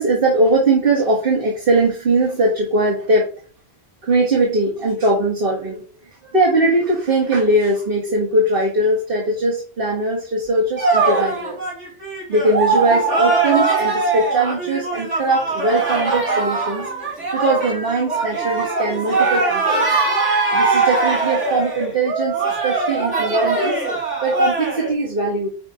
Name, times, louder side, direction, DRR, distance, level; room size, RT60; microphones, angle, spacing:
voice 1, 0.0-3.3 4.0-11.6 12.3-16.9 17.3-19.9 20.5-23.8 24.2-25.5, right 2 dB, 50° right, -2 dB, 1.8 m, -20 dB
sound 1, 10.8-24.9, right 3 dB, 75° right, 4.7 m, -21 dB
9.8 x 3.3 x 4.9 m, 0.40 s
omnidirectional pair, 1.2 m